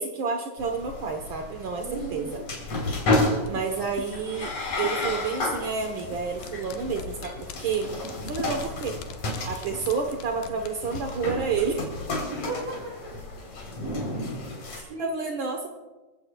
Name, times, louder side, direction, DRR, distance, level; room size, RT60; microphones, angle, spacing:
voice 1, 0.0-2.4 3.5-7.9 8.3-9.0 9.4-11.9 14.7-15.7, right 5 dB, 60° right, 3 dB, 1.3 m, -30 dB
sound 1, 0.6-14.8, left 2 dB, 60° left, 5.0 m, -32 dB
voice 2, 1.8-2.4 12.3-13.2 14.4-15.1, right 2 dB, 35° right, -1 dB, 2.6 m, -37 dB
sound 2, 2.6-12.0 12.3-12.4, left 9 dB, 90° left, 2.6 m, -44 dB
27.5 x 16.0 x 2.3 m, 1.1 s
omnidirectional pair, 3.7 m